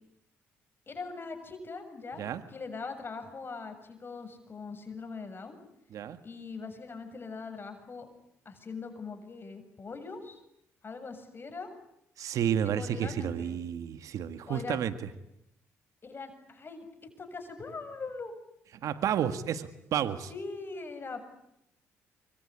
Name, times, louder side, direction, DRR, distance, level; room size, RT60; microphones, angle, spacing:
voice 1, 0.9-2.2 2.5-5.6 6.2-8.1 8.5-10.4 10.8-11.7 12.6-13.6 14.5-14.8 16.0-16.9 17.2-18.3 20.3-21.2, left 4 dB, 40° left, 7 dB, 7.2 m, -41 dB
voice 2, 12.2-14.9 18.8-20.3, right 9 dB, 70° right, 11 dB, 1.8 m, -31 dB
26.0 x 23.0 x 9.7 m, 0.80 s
supercardioid pair, 60°, 6 cm